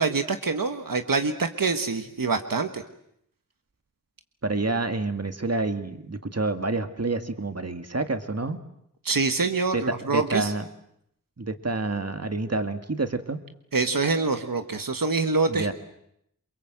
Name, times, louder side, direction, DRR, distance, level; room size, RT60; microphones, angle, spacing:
voice 1, 0.0-2.8 9.0-10.5 13.7-15.7, right 4 dB, 90° right, 7 dB, 1.4 m, -25 dB
voice 2, 4.4-8.6 9.7-10.7 11.4-13.4 15.5-15.7, right 3 dB, 50° right, 8 dB, 2.1 m, -28 dB
28.5 x 23.5 x 7.9 m, 0.76 s
wide cardioid pair, 40°, 33 cm